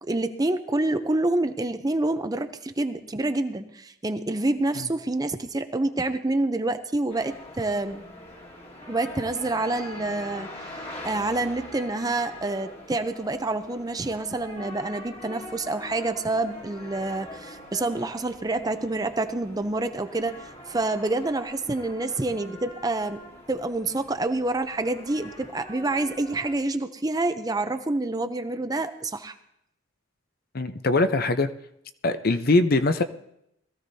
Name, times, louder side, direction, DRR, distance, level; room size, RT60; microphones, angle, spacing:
voice 1, 0.0-8.0 8.9-23.2 23.5-29.4, right 2 dB, 20° right, 9 dB, 0.5 m, -27 dB
sound 1, 7.1-26.5, left 1 dB, 30° left, 1.8 m, -43 dB
voice 2, 30.5-31.5 32.0-33.0, left 2 dB, 45° left, 10 dB, 0.6 m, -22 dB
21.0 x 14.5 x 2.7 m, 0.78 s
head